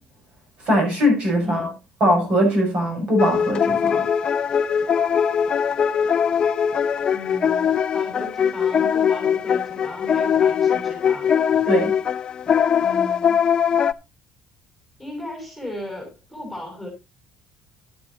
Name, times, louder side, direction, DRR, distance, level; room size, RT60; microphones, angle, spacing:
voice 1, 0.7-1.7 2.0-4.1 11.7-11.9, equal, 40° right, 7.0 m, -20 dB
voice 2, 1.4-1.8 7.1-11.3 12.8-13.4 15.0-16.9, left 1 dB, 5° right, 6.1 m, -36 dB
sound 1, 3.2-13.9, left 8 dB, 35° left, 0.6 m, -21 dB
12.5 x 10.0 x 2.8 m
cardioid pair, 140°, 2 cm